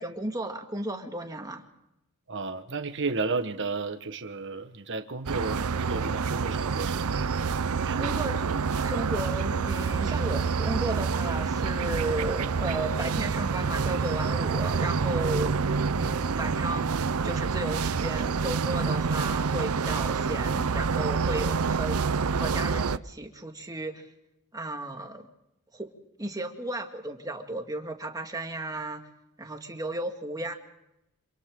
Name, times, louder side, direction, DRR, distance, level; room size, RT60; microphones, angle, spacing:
voice 1, 0.0-1.6 7.7-8.4 8.8-15.6 15.9-22.0 22.3-24.1 24.5-25.3 25.7-25.9 26.2-29.1 29.4-30.5, right 1 dB, 15° right, 4 dB, 2.1 m, -34 dB
voice 2, 2.3-8.0, right 3 dB, 55° right, 8 dB, 1.4 m, -33 dB
sound 1, 5.3-23.0, right 5 dB, 80° right, 0.6 m, -27 dB
27.0 x 27.0 x 3.8 m, 0.86 s
head